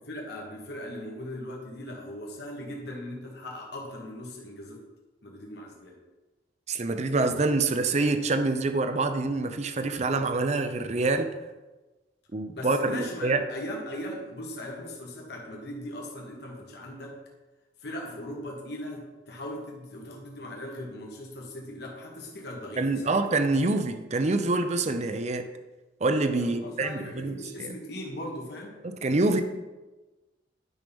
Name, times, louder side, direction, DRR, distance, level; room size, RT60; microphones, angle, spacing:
voice 1, 0.1-4.8 5.2-6.0 12.5-17.2 17.8-23.2 26.4-28.8, left 1 dB, 60° left, -1 dB, 1.5 m, -39 dB
voice 2, 6.7-11.3 12.3-13.4 22.8-25.5 26.0-27.7 28.8-29.4, right 3 dB, 40° right, 8 dB, 0.6 m, -26 dB
10.5 x 5.6 x 3.5 m, 1.2 s
head